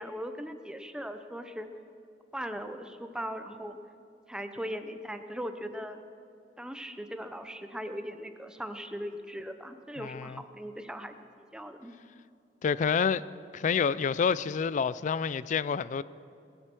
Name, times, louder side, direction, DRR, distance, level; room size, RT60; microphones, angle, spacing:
voice 1, 0.0-1.7 2.3-3.8 4.3-6.0 6.6-11.9, equal, 5° right, 0.7 m, -39 dB
voice 2, 10.0-10.4 12.6-13.2 13.5-16.0, left 6 dB, 45° left, 0.3 m, -28 dB
20.5 x 7.9 x 6.1 m
head